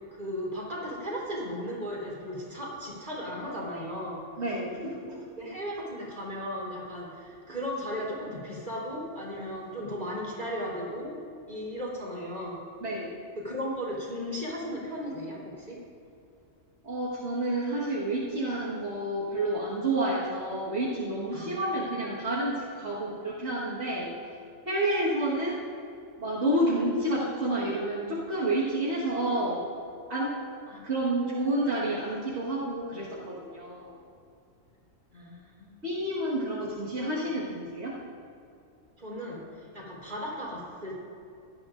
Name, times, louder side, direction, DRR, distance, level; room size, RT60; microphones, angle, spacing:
voice 1, 0.1-4.3 5.4-11.2 11.5-12.6 13.4-15.8 21.3-21.9 30.7-31.1 35.1-35.8 39.0-41.0, equal, 35° right, -7 dB, 3.7 m, -36 dB
voice 2, 4.4-5.3 12.8-13.2 16.8-24.1 24.7-25.6 26.2-29.7 30.1-30.4 30.8-34.0 35.8-38.0, right 1 dB, 60° right, -7 dB, 1.9 m, -29 dB
17.5 x 13.0 x 2.6 m, 2.6 s
omnidirectional pair, 1.4 m